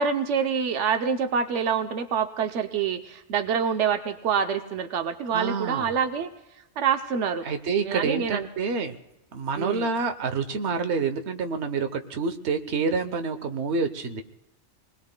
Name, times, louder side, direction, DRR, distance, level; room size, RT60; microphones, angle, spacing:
voice 1, 0.0-6.3 6.8-7.4 7.8-8.5 9.6-9.9, right 7 dB, 90° right, 7 dB, 1.1 m, -26 dB
voice 2, 5.3-5.9 7.4-9.0 9.3-14.2, right 5 dB, 70° right, 8 dB, 1.2 m, -27 dB
28.0 x 20.5 x 2.2 m, 0.94 s
omnidirectional pair, 1.2 m